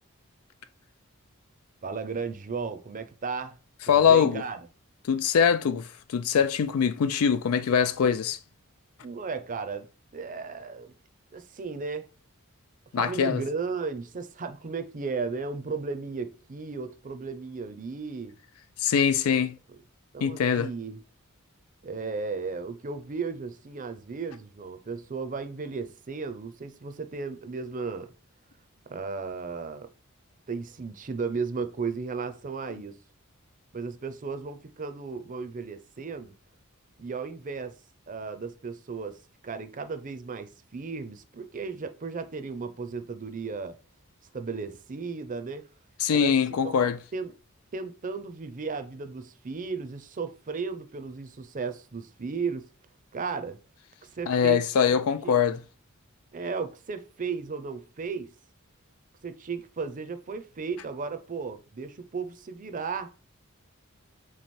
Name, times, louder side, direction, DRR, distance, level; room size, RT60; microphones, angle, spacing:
voice 1, 1.8-3.6 3.9-4.6 9.0-9.9 10.1-10.9 11.3-12.1 13.0-18.4 19.3-19.5 19.7-19.8 20.1-21.0 21.8-28.1 28.9-29.9 30.5-33.0 33.7-36.3 37.0-37.7 38.1-39.2 39.4-43.8 44.3-45.7 46.1-46.4 46.6-46.8 47.1-47.3 47.7-52.7 53.1-53.6 54.0-54.6 54.9-55.4 56.3-58.3 59.2-63.1, right 4 dB, 40° right, 0.6 m, -35 dB
voice 2, 3.9-4.4 5.1-8.4 12.9-13.4 18.8-19.6 20.2-20.7 46.0-47.0 54.3-55.6, left 7 dB, 80° left, 0.4 m, -23 dB
3.8 x 3.2 x 4.3 m
head